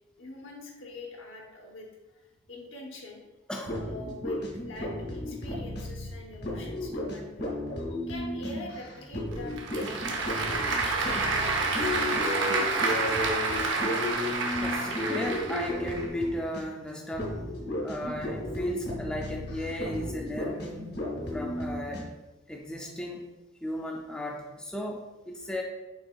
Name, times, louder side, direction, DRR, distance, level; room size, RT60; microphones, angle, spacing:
voice 1, 0.2-3.2 3.8-7.5 7.9-13.7, left 1 dB, 80° left, 1 dB, 0.9 m, -44 dB
voice 2, 3.5-3.8 14.6-17.4 17.8-21.0 21.3-22.1 22.5-23.2 23.6-25.6, left 1 dB, 5° left, -1 dB, 0.3 m, -36 dB
sound 1, 3.6-16.8 17.1-22.0, left 1 dB, 50° left, 0.8 m, -34 dB
Applause / Crowd, 9.3-16.0, right 3 dB, 70° right, 0.7 m, -29 dB
5.3 x 3.7 x 2.3 m, 1.1 s
head